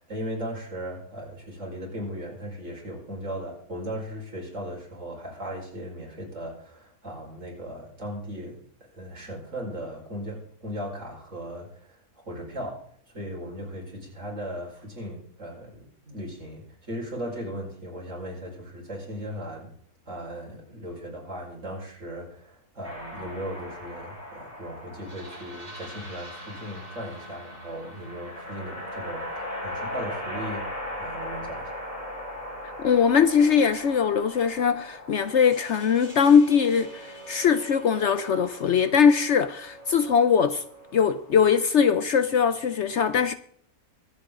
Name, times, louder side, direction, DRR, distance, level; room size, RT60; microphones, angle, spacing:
voice 1, 0.0-12.8 13.1-19.7 20.1-30.7 31.0-31.8, equal, 60° right, 5.4 m, -37 dB
sound 1, 22.8-41.5, left 1 dB, 25° right, 6.8 m, -39 dB
voice 2, 32.6-40.6 40.9-43.3, left 7 dB, 60° left, 0.9 m, -21 dB
24.0 x 8.2 x 3.8 m
omnidirectional pair, 1.5 m